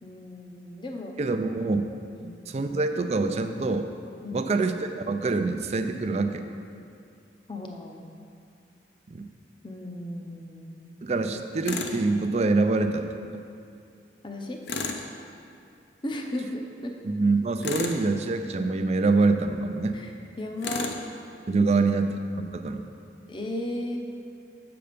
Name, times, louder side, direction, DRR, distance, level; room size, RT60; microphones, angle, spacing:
voice 1, 0.0-1.1 2.1-2.4 4.2-4.5 7.5-8.1 9.6-10.8 14.2-14.6 16.0-16.9 19.9-20.1 20.4-20.9 21.6-21.8 23.3-24.0, left 1 dB, 25° left, 2 dB, 0.6 m, -35 dB
voice 2, 1.2-1.9 2.5-3.9 4.3-4.8 5.1-6.4 9.1-9.3 11.0-13.1 17.0-20.0 21.5-22.8, right 3 dB, 35° right, 7 dB, 0.4 m, -25 dB
Tools, 11.7-12.0 14.7-15.1 17.6-18.1 20.6-21.0, left 4 dB, 75° left, 0.6 m, -31 dB
6.8 x 6.8 x 5.1 m, 2.5 s
head